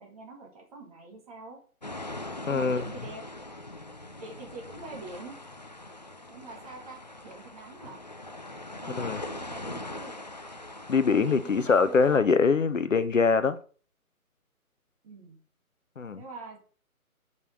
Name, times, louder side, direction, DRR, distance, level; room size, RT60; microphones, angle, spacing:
voice 1, 0.0-1.6 2.5-3.2 4.2-5.4 6.3-8.0 8.8-10.1 11.0-12.2 15.0-15.4 16.1-16.6, right 3 dB, 25° right, 2.0 m, -44 dB
sound 1, 1.8-12.2, left 2 dB, 30° left, 0.5 m, -42 dB
voice 2, 2.5-2.8 9.0-9.2 10.9-13.6 16.0-16.2, left 5 dB, 60° left, 0.8 m, -23 dB
6.8 x 5.5 x 6.7 m
figure-of-eight pair, 150°, 44 cm